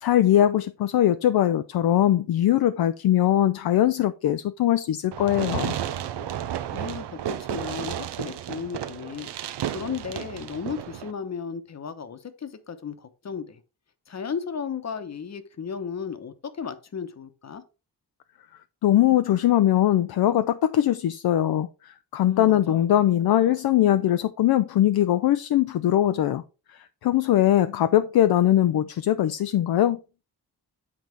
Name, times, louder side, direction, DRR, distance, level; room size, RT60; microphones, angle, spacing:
voice 1, 0.0-5.7 18.8-26.4 26.7-30.0, left 12 dB, 65° left, 0.5 m, -21 dB
Fireworks, 5.1-11.1, right 11 dB, 85° right, 0.7 m, -32 dB
voice 2, 5.6-6.3 6.7-9.3 9.7-13.6 14.1-17.6 22.2-22.8, left 6 dB, 40° left, 1.0 m, -35 dB
8.4 x 4.0 x 4.5 m
wide cardioid pair, 110°, 40 cm